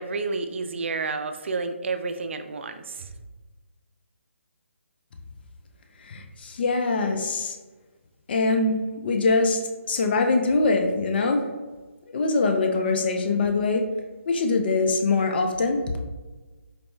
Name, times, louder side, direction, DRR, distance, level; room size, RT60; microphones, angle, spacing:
voice 1, 0.0-3.1, right 4 dB, 55° right, 8 dB, 0.3 m, -30 dB
voice 2, 6.0-7.6 8.3-9.6 9.9-11.4 12.1-13.8 14.3-15.8, left 3 dB, 45° left, 4 dB, 0.5 m, -23 dB
4.2 x 2.1 x 3.1 m, 1.3 s
figure-of-eight pair, 150°, 7 cm